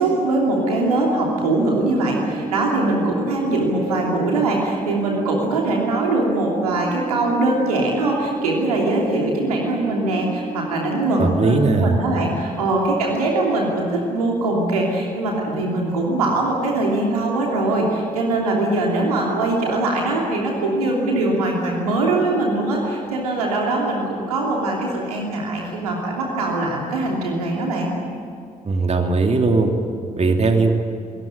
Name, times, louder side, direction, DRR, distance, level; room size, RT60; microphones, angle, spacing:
voice 1, 0.0-27.9, right 2 dB, 80° right, -1 dB, 3.0 m, -22 dB
sound 1, 0.8-10.9, right 5 dB, 35° left, 5.8 m, -33 dB
voice 2, 11.2-12.0 28.6-29.7 30.2-30.7, right 3 dB, 35° right, 4 dB, 2.8 m, -18 dB
26.5 x 18.5 x 8.8 m, 2.4 s
figure-of-eight pair, 40°, 19 cm